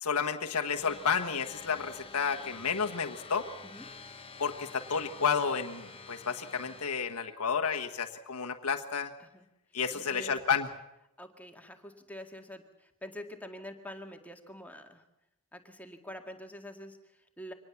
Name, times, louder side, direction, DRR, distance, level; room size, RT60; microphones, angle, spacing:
voice 1, 0.0-3.5 4.4-9.1 9.7-10.7, left 6 dB, 85° left, 4 dB, 1.4 m, -31 dB
sound 1, 0.7-6.9, left 4 dB, 25° left, 1.2 m, -48 dB
voice 2, 9.7-10.3 11.2-15.0 15.5-17.5, equal, 5° left, 4 dB, 2.0 m, -46 dB
24.5 x 19.5 x 7.1 m, 0.85 s
head